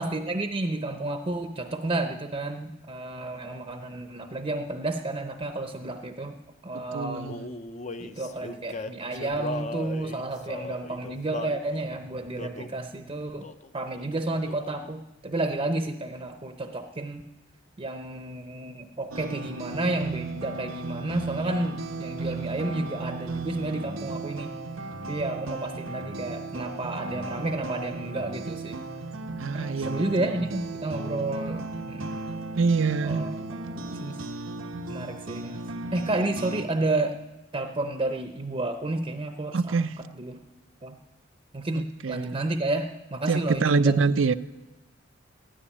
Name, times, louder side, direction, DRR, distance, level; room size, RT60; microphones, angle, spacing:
voice 1, 0.0-6.4 6.6-7.4 8.0-13.5 13.7-17.2 17.8-24.5 25.1-28.8 29.5-32.1 33.0-33.4 33.8-34.2 34.9-35.6 35.9-37.2 37.5-40.4 40.8-41.0 41.5-44.0, right 2 dB, 30° right, 6 dB, 0.7 m, -31 dB
voice 2, 6.9-7.5 29.4-30.0 32.6-33.3 39.5-40.0 41.7-42.4 43.3-44.3, right 4 dB, 70° right, 14 dB, 0.5 m, -25 dB
Male singing, 7.2-11.6 12.4-12.8 13.4-13.7 14.0-14.9, left 2 dB, 35° left, 0.6 m, -37 dB
sound 1, 19.1-36.7, right 3 dB, 85° right, 1.1 m, -36 dB
13.5 x 10.0 x 9.8 m, 1.0 s
head